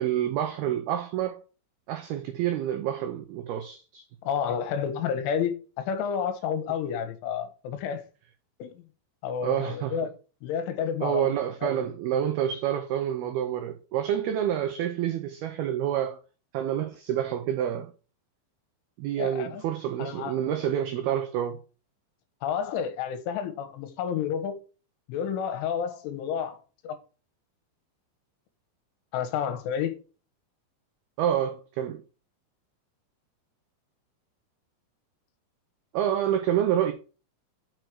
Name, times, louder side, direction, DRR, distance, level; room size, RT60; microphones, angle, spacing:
voice 1, 0.0-1.4 1.9-4.0 9.4-10.0 11.0-16.2 16.5-17.9 19.0-21.6 31.2-32.0 35.9-36.9, right 10 dB, 85° right, 2.1 m, -28 dB
voice 2, 4.2-8.1 8.6-8.8 9.2-10.1 10.4-11.8 19.2-19.6 20.0-20.4 22.4-24.6 25.1-26.6 26.8-27.0 29.1-30.0, left 7 dB, 80° left, 3.7 m, -30 dB
6.7 x 6.4 x 6.0 m
omnidirectional pair, 5.6 m